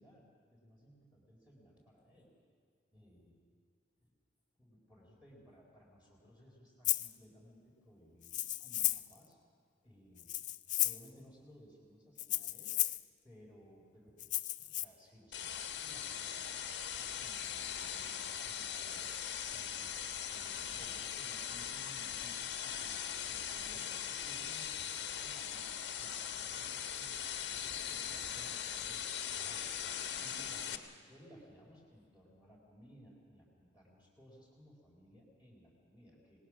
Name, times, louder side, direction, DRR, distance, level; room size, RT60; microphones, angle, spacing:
voice 1, 0.0-2.3 2.9-3.4 4.0-4.1 4.6-9.4 9.8-10.3 10.8-12.8 13.2-14.3 14.6-19.2 19.5-27.8 28.3-29.8 30.2-36.5, equal, 10° right, -4 dB, 4.1 m, -60 dB
Rattle (instrument), 6.8-7.1 8.2-9.1 10.2-11.1 12.2-13.0 14.2-14.8, left 15 dB, 40° left, 0.4 m, -34 dB
sound 1, 15.3-30.8, left 9 dB, 65° left, 1.4 m, -40 dB
26.5 x 19.5 x 6.2 m, 2.2 s
head